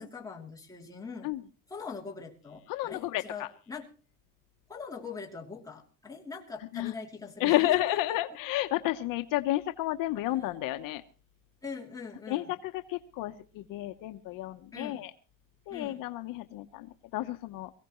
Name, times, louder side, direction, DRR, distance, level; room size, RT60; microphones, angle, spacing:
voice 1, 0.0-1.3 1.7-3.9 4.7-8.0 11.6-12.5 14.7-15.0 15.7-16.0, left 4 dB, 10° left, -2 dB, 2.9 m, -42 dB
voice 2, 2.7-3.5 6.7-6.9 7.4-11.0 12.3-15.1 15.7-17.7, left 16 dB, 65° left, 7 dB, 1.0 m, -31 dB
23.0 x 16.0 x 3.1 m, 0.38 s
cardioid pair, 170°, 36 cm